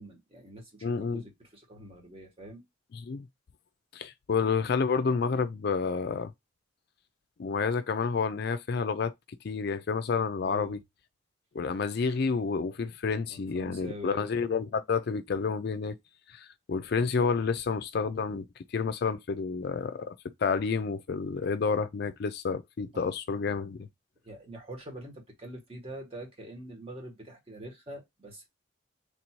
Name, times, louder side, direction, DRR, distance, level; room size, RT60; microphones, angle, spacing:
voice 1, 0.0-2.6 10.4-10.8 13.3-14.3 22.9-23.0 24.2-28.5, right 1 dB, 30° right, 1.4 m, -44 dB
voice 2, 0.8-1.2 2.9-3.3 3.9-6.3 7.4-9.1 9.4-10.8 11.5-16.0 16.3-23.9, left 5 dB, 55° left, 0.4 m, -29 dB
3.4 x 2.7 x 4.4 m
head